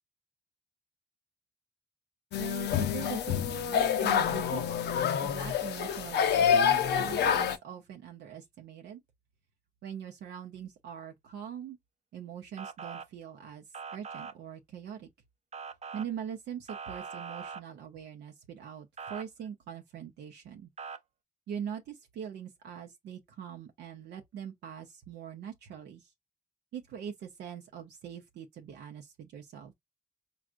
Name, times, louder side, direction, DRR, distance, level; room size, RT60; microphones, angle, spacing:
sound 1, 2.3-7.6, left 8 dB, 85° left, 0.5 m, -27 dB
voice 1, 2.4-4.7 5.2-9.0 9.8-11.8 12.1-13.6 13.9-15.1 15.9-20.7 21.5-26.1 26.7-29.7, right 8 dB, 90° right, 0.7 m, -42 dB
Motor vehicle (road) / Siren, 12.6-13.1 13.7-14.3 15.5-16.1 16.7-17.6 19.0-19.2 20.8-21.0, right 5 dB, 40° right, 0.6 m, -41 dB
4.7 x 2.5 x 2.4 m
supercardioid pair, 50°, 17 cm